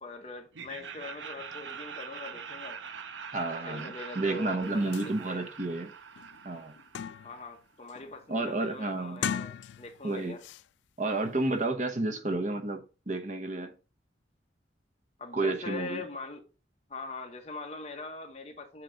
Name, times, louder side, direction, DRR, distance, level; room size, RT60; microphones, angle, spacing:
voice 1, 0.0-2.8 3.4-5.5 7.2-10.4 15.2-16.4 16.9-18.8, left 3 dB, 35° left, 1.2 m, -42 dB
Laughter, 0.5-7.5, right 6 dB, 80° right, 0.6 m, -43 dB
voice 2, 3.3-5.9 6.4-6.7 8.3-9.2 10.0-10.4 11.0-13.7 15.3-16.0, right 2 dB, 40° right, 0.9 m, -31 dB
sound 1, 4.6-4.7 4.9-5.1 5.6-5.7 6.2-7.5 7.9-8.2 9.1-10.1 10.4-10.6, left 8 dB, 80° left, 0.3 m, -37 dB
7.8 x 3.0 x 5.1 m
head